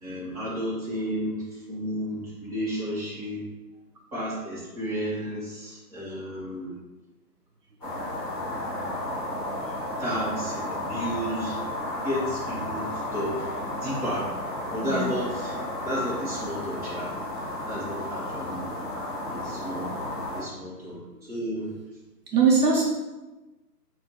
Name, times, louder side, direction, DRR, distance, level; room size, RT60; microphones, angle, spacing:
voice 1, 0.0-3.4 4.1-6.7 10.0-11.6 12.0-13.5 13.8-14.3 14.7-15.5 15.8-17.1 17.6-18.6 19.3-19.9 20.3-21.7, equal, 25° right, -10 dB, 1.2 m, -32 dB
sound 1, 7.8-20.4, left 1 dB, 15° left, 1.1 m, -33 dB
voice 2, 22.3-22.8, right 4 dB, 70° right, -2 dB, 0.9 m, -22 dB
3.7 x 2.4 x 3.1 m, 1.1 s
figure-of-eight pair, 155°, 49 cm